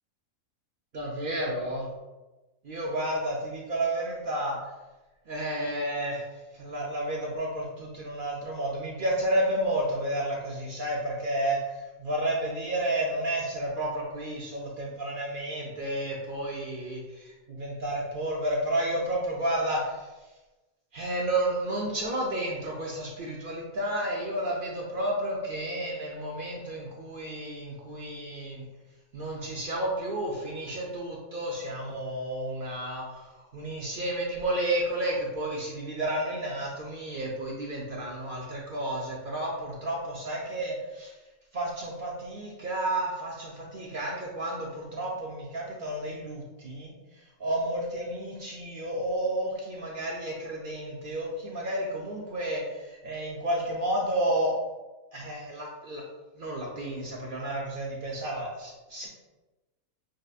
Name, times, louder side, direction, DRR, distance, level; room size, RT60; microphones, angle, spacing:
voice 1, 0.9-1.9 2.6-4.6 5.3-6.3 6.5-20.1 20.9-28.7 29.1-41.1 41.5-46.9 47.4-54.6 55.1-56.0 56.4-59.1, right 1 dB, 60° right, -2 dB, 0.5 m, -31 dB
6.0 x 2.5 x 2.4 m, 1.1 s
omnidirectional pair, 1.5 m